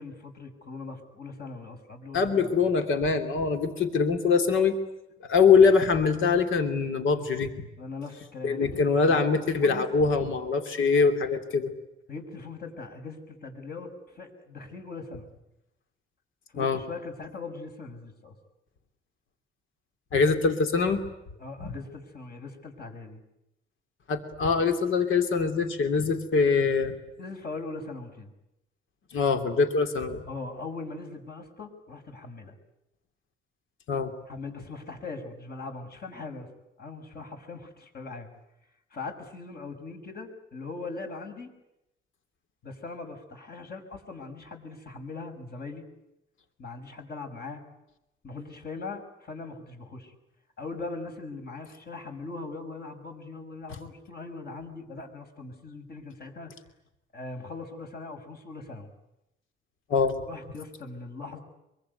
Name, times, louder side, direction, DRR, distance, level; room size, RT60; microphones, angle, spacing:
voice 1, 0.0-2.7 7.8-10.1 12.1-15.3 16.5-18.3 21.4-23.2 27.2-28.3 30.3-32.6 34.3-36.5 36.8-38.3 38.9-41.5 42.6-45.8 46.6-47.6 48.2-50.1 50.6-56.5 57.1-58.9 60.3-61.4, left 3 dB, 50° left, 4 dB, 6.1 m, -40 dB
voice 2, 2.1-4.8 5.3-7.5 8.4-11.7 16.6-16.8 20.1-21.0 24.1-26.9 29.1-30.3 33.9-34.1 59.9-60.2, left 5 dB, 75° left, 7 dB, 2.8 m, -23 dB
24.5 x 24.0 x 9.6 m, 0.88 s
cardioid pair, 125°, 20 cm